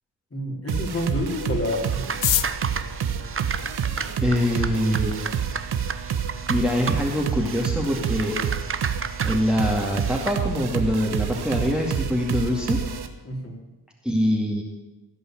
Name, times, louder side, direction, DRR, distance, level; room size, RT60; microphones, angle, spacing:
voice 1, 0.3-2.0 13.2-13.6, left 1 dB, 30° left, 0 dB, 3.8 m, -28 dB
sound 1, 0.7-13.1, right 7 dB, 65° right, 1.3 m, -28 dB
sound 2, 1.7-10.4, right 5 dB, 30° right, 0.9 m, -34 dB
sound 3, 2.0-4.3 5.1-5.2 5.4-5.5 5.8-6.3 6.6-6.7 6.9-7.3 7.6-7.8 8.1-8.4, left 13 dB, 85° left, 0.7 m, -29 dB
voice 2, 4.2-5.1 6.5-8.4 9.2-12.8 14.0-14.6, equal, ahead, -1 dB, 2.2 m, -24 dB
16.0 x 5.5 x 9.1 m, 1.1 s
cardioid pair, 60°, 42 cm